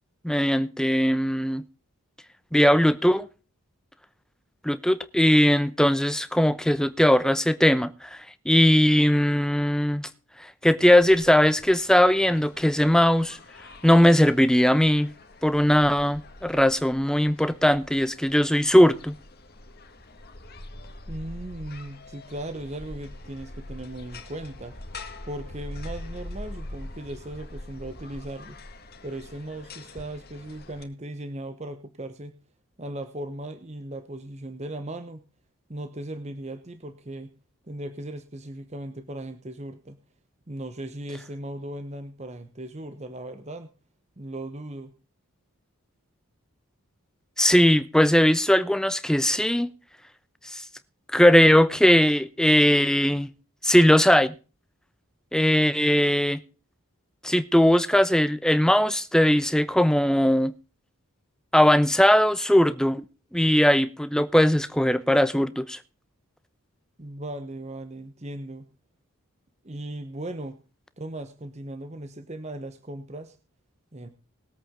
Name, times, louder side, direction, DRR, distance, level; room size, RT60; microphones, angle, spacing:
voice 1, 0.2-1.6 2.5-3.3 4.6-10.1 10.6-13.4 13.8-15.1 15.4-19.1 47.4-49.7 50.4-50.6 51.1-53.3 53.6-54.3 55.3-56.4 57.2-60.5 61.5-63.0 63.3-65.8, equal, 5° left, 0.7 m, -20 dB
sound 1, 11.0-30.8, left 1 dB, 45° left, 1.9 m, -43 dB
voice 2, 21.1-24.8 25.2-28.6 29.0-32.4 32.8-35.2 35.7-37.3 37.7-40.0 40.5-43.7 44.2-44.9 67.0-68.7 69.6-70.6 71.0-73.4 73.9-74.1, right 1 dB, 30° right, 1.0 m, -37 dB
20.5 x 8.5 x 3.7 m
head